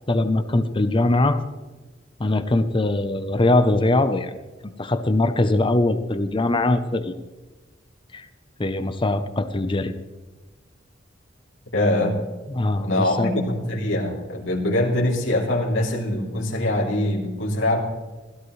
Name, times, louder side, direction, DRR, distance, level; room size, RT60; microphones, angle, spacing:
voice 1, 0.1-1.4 2.2-4.3 4.8-7.1 8.1-8.3 8.6-9.9 12.5-13.3, left 2 dB, 25° left, 10 dB, 0.7 m, -21 dB
voice 2, 11.7-12.1 12.8-17.8, left 1 dB, 85° left, -2 dB, 3.2 m, -23 dB
16.5 x 14.0 x 3.2 m, 1.2 s
head